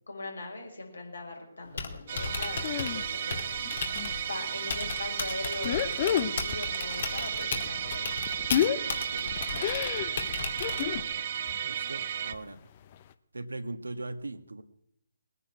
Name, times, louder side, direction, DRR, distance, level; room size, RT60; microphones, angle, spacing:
voice 1, 0.1-8.1, left 2 dB, 80° left, 2 dB, 5.5 m, -41 dB
Typing, 1.6-11.2, left 5 dB, 55° left, 2.6 m, -37 dB
Musical instrument, 2.1-12.3, right 9 dB, 45° right, 0.9 m, -34 dB
sound 1, 2.6-3.0 3.4-4.2 4.6-4.8 5.5-6.7 7.0-11.1 11.5-11.7 12.0-12.1 12.3-12.4 12.9-13.0, left 10 dB, 35° left, 0.8 m, -31 dB
voice 2, 8.8-9.8 10.7-11.0 11.6-12.6 13.3-14.6, right 2 dB, 80° right, 10 dB, 1.5 m, -40 dB
20.5 x 9.8 x 6.0 m, 0.76 s
figure-of-eight pair, 145°, 0 cm